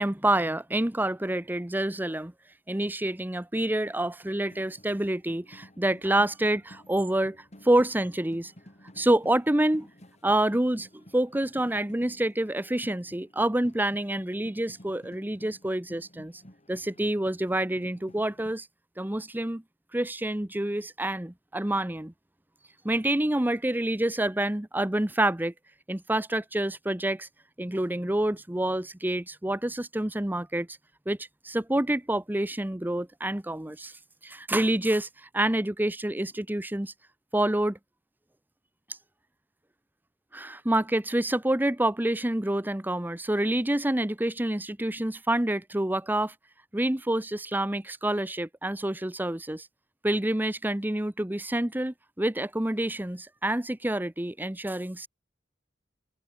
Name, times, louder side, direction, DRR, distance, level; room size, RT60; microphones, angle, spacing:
voice 1, 0.0-2.3 2.7-8.5 9.0-9.9 10.2-16.4 16.7-18.7 19.0-19.6 19.9-22.1 22.8-25.5 25.9-27.3 27.6-30.7 31.1-31.2 31.4-34.0 34.2-36.9 37.3-37.8 40.3-46.3 46.7-49.7 50.0-55.1, right 1 dB, 10° right, 0.8 m, -27 dB
sound 1, 4.0-18.5, equal, 35° left, 6.5 m, -53 dB
head